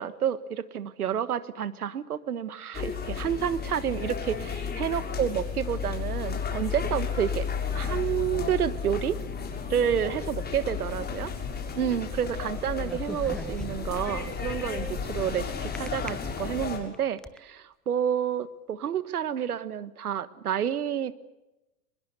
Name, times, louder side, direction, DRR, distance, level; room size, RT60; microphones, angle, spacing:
voice 1, 0.0-7.5 7.7-9.2 9.7-11.3 11.7-21.1, right 9 dB, 90° right, 15 dB, 1.5 m, -29 dB
sound 1, 2.7-16.8, left 6 dB, 20° left, 6.6 m, -33 dB
sound 2, 12.8-14.0 15.8-16.1 16.7-17.4, left 1 dB, ahead, 1.0 m, -39 dB
24.0 x 21.0 x 8.2 m, 0.98 s
hypercardioid pair, 105°, 43 cm